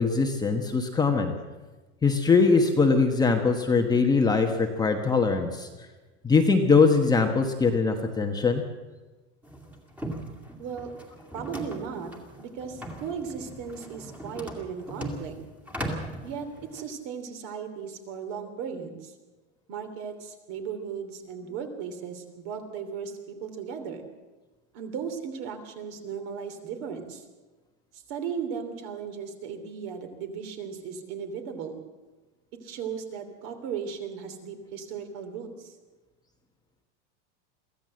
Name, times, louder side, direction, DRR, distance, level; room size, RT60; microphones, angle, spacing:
voice 1, 0.0-1.3 2.0-5.7 6.2-8.6, left 4 dB, 10° left, 3 dB, 1.2 m, -22 dB
sound 1, 9.4-16.8, right 1 dB, 5° right, 2.2 m, -39 dB
voice 2, 10.6-10.9 11.3-12.1 12.4-15.3 16.2-19.1 19.7-24.1 24.7-27.2 27.9-31.8 32.6-35.7, right 6 dB, 50° right, 7 dB, 3.2 m, -36 dB
23.0 x 15.0 x 7.7 m, 1.2 s
supercardioid pair, 155°, 35 cm